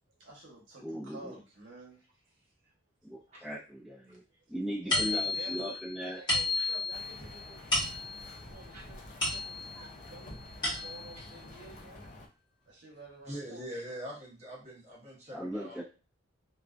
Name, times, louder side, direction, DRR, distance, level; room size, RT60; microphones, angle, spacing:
voice 1, 0.2-2.1 2.6-2.7 4.1-4.4 4.8-7.7 8.5-10.3 10.6-12.0 12.7-14.0, right 2 dB, 65° right, -2 dB, 1.0 m, -51 dB
voice 2, 0.8-1.3 3.0-4.2 4.5-6.2 15.3-15.8, equal, ahead, -8 dB, 0.6 m, -38 dB
sound 1, 4.9-9.9 10.3-11.2, left 2 dB, 25° left, 1.1 m, -33 dB
sound 2, 6.9-12.3, left 1 dB, 40° left, 0.4 m, -49 dB
voice 3, 13.3-15.8, equal, 35° right, -4 dB, 0.9 m, -43 dB
2.4 x 2.3 x 2.4 m, 0.33 s
head